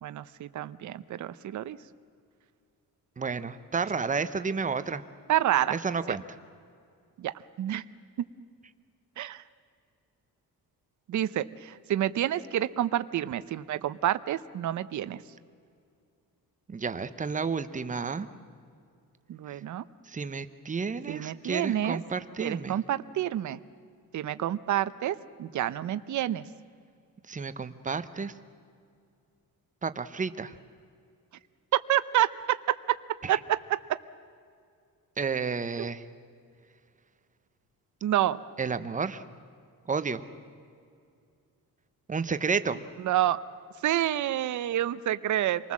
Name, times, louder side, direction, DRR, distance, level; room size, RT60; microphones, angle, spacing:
voice 1, 0.0-1.8 5.3-5.7 6.1-6.2 7.2-7.3 7.6-7.8 9.2-9.4 11.1-15.2 19.3-19.8 21.1-22.0 22.4-23.6 24.1-26.4 31.9-33.0 33.3-34.0 35.8-35.9 38.0-38.4 43.0-43.4 43.8-45.7, right 12 dB, 55° right, 14 dB, 0.7 m, -28 dB
voice 2, 3.2-5.0 5.7-6.2 16.7-18.3 20.1-22.8 27.3-28.3 29.8-30.5 33.2-33.4 35.2-36.0 38.6-39.2 39.9-40.2 42.1-42.8, right 5 dB, 20° right, 12 dB, 0.8 m, -31 dB
27.5 x 19.5 x 7.4 m, 2.4 s
cardioid pair, 170°, 36 cm